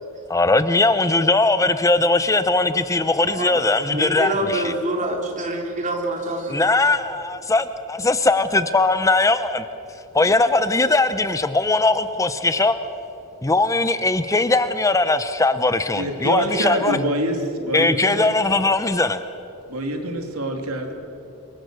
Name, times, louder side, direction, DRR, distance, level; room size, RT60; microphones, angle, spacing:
voice 1, 0.3-4.7 6.5-9.6 10.1-12.7 13.4-17.0 17.7-19.2, left 2 dB, 15° left, 11 dB, 0.6 m, -20 dB
voice 2, 3.3-6.7, right 1 dB, 35° right, 2 dB, 3.1 m, -26 dB
voice 3, 15.9-18.3 19.7-20.9, right 1 dB, 75° right, 4 dB, 2.9 m, -25 dB
26.5 x 23.0 x 6.5 m, 3.0 s
head